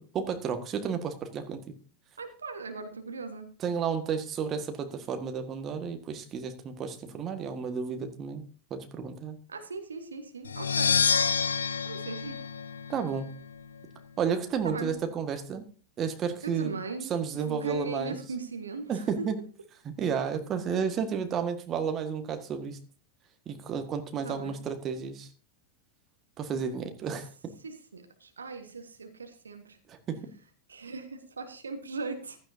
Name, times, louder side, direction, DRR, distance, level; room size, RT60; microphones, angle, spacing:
voice 1, 0.0-1.6 3.6-8.4 8.7-9.4 12.9-13.3 14.2-15.6 16.0-16.7 17.1-18.2 18.9-19.4 19.8-22.8 23.5-25.3 26.4-27.3 29.9-30.2, right 6 dB, 30° right, 7 dB, 1.6 m, -32 dB
voice 2, 2.2-3.5 9.5-11.0 11.8-12.4 14.6-14.9 16.4-19.1 24.2-24.6 27.6-29.8 30.7-32.4, right 3 dB, 75° right, 7 dB, 1.4 m, -39 dB
sound 1, 10.5-13.3, left 6 dB, 70° left, 0.5 m, -28 dB
15.0 x 12.5 x 2.7 m, 0.37 s
figure-of-eight pair, 90°, 0 cm